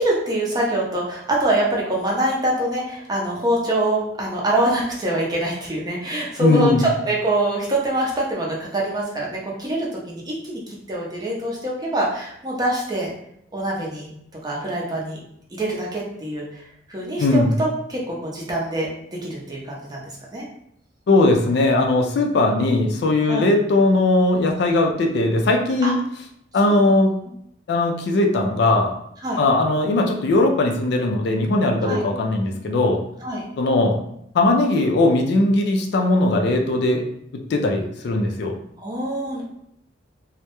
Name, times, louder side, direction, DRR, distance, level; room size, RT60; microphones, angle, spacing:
voice 1, 0.0-13.1 13.5-14.1 14.4-15.2 15.5-20.0 20.3-20.5 22.3-22.4 23.3-23.5 25.8-25.9 26.7-26.9 29.2-29.4 31.8-32.0 33.2-33.4 38.8-39.4, right 1 dB, 20° right, -4 dB, 0.5 m, -24 dB
voice 2, 6.4-6.9 17.2-17.5 21.1-26.0 26.5-27.2 27.7-28.9 29.4-33.0 33.6-34.0 34.3-37.0 37.5-38.5, left 2 dB, 60° left, 2 dB, 0.3 m, -19 dB
2.2 x 2.0 x 2.8 m, 0.72 s
head